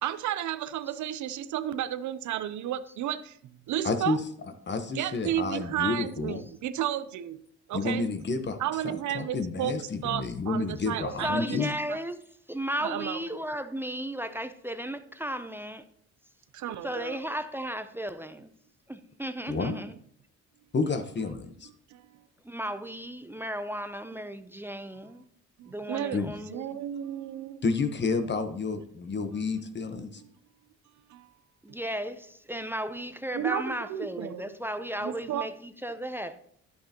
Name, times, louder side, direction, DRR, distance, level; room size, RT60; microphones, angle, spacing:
voice 1, 0.0-4.2 4.9-7.4 7.7-8.1 8.6-11.6 11.9-12.0 12.8-13.4 16.5-17.2 19.5-19.8 21.9-22.3 25.6-26.2 26.5-27.6 30.2-30.3 31.1-31.3 31.7-31.8 33.3-34.5 35.0-35.5, right 11 dB, 70° right, 0.6 m, -33 dB
voice 2, 3.8-4.2 4.7-6.4 7.7-8.6 8.8-9.8 10.0-11.7 19.5-19.8 20.7-21.7 26.1-26.4 27.6-30.2, left 4 dB, 35° left, 1.1 m, -30 dB
voice 3, 11.2-12.2 12.5-15.8 16.8-18.5 18.9-19.9 22.5-25.2 25.7-26.7 31.6-36.4, equal, 5° right, 0.6 m, -35 dB
10.5 x 8.5 x 2.9 m
cardioid pair, 90°, 30 cm